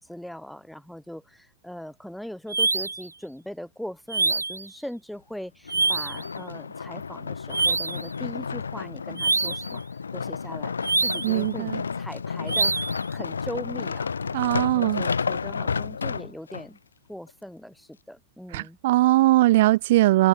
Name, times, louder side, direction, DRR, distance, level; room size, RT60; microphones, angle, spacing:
voice 1, 0.0-9.8 10.1-10.7 11.0-14.1 14.5-16.8 17.1-18.8, equal, ahead, 5.1 m, -40 dB
sound 1, 2.5-3.1 4.1-4.7 5.7-6.2 7.5-8.1 9.2-9.7 10.8-11.4 12.5-13.0, right 3 dB, 80° right, 0.7 m, -25 dB
sound 2, 5.7-16.7 17.3-17.4, left 5 dB, 75° left, 2.2 m, -31 dB
voice 2, 11.2-11.8 14.3-15.0 18.5-20.3, right 17 dB, 55° right, 0.3 m, -20 dB
figure-of-eight pair, 90°, 0 cm